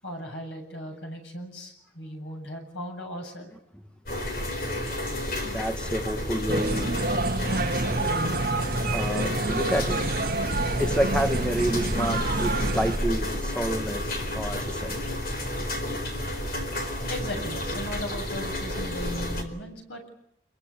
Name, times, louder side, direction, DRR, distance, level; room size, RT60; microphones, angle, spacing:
voice 1, 0.0-3.5 17.1-20.0, equal, 90° left, 3 dB, 7.8 m, -37 dB
sound 1, 4.1-19.4, left 1 dB, 55° left, 4.3 m, -31 dB
voice 2, 5.4-7.0 8.9-15.0, equal, 5° left, 7 dB, 1.3 m, -29 dB
sound 2, 6.5-13.0, right 2 dB, 55° right, 1.9 m, -28 dB
27.5 x 23.0 x 8.6 m, 0.74 s
head